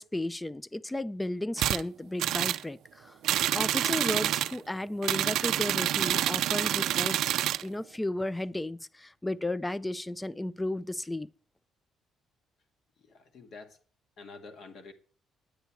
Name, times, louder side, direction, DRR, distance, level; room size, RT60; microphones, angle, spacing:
voice 1, 0.0-3.2 3.5-7.3 7.6-11.3, left 1 dB, 10° left, 0.4 m, -34 dB
sound 1, 1.6-1.8 2.2-2.6 3.2-4.6 5.0-7.6, right 12 dB, 75° right, 0.5 m, -27 dB
voice 2, 13.0-13.8 14.2-14.9, left 4 dB, 60° left, 2.0 m, -48 dB
9.5 x 9.3 x 4.7 m
cardioid pair, 100°, 0 cm